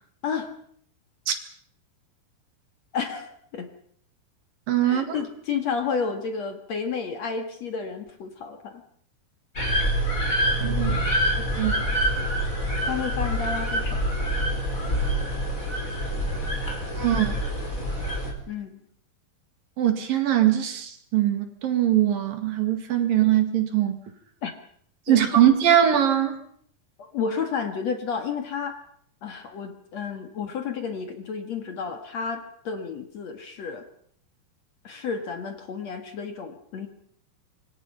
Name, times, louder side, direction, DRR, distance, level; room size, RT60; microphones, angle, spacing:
voice 1, 0.2-0.6 2.9-3.7 4.8-8.8 12.9-14.0 18.5-18.8 24.4-24.5 25.1-25.2 27.0-28.8 29.2-33.9 34.8-36.9, left 6 dB, 50° left, 6 dB, 2.5 m, -31 dB
voice 2, 4.7-5.2 10.6-11.0 11.4-11.8 17.0-17.4 19.8-24.0 25.1-26.4, right 11 dB, 65° right, 7 dB, 3.8 m, -22 dB
sound 1, 9.6-18.3, equal, 20° left, 4.8 m, -26 dB
27.0 x 23.5 x 5.6 m, 0.64 s
omnidirectional pair, 4.5 m